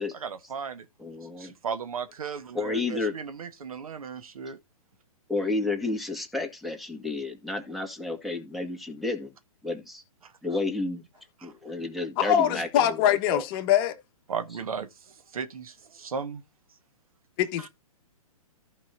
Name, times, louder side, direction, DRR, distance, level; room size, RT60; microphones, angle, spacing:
voice 1, 0.1-0.9 1.4-4.6 10.2-10.3 11.4-11.5 14.3-14.9 15.3-16.4 17.6-17.7, right 6 dB, 75° right, 1.4 m, -36 dB
voice 2, 1.0-1.5 2.5-3.1 5.3-9.3 9.6-10.0 10.4-11.0 11.4-13.4, left 3 dB, ahead, 1.8 m, -31 dB
voice 3, 12.2-14.0 17.4-17.7, left 10 dB, 40° left, 1.3 m, -23 dB
14.5 x 5.4 x 2.6 m
hypercardioid pair, 130°, 19 cm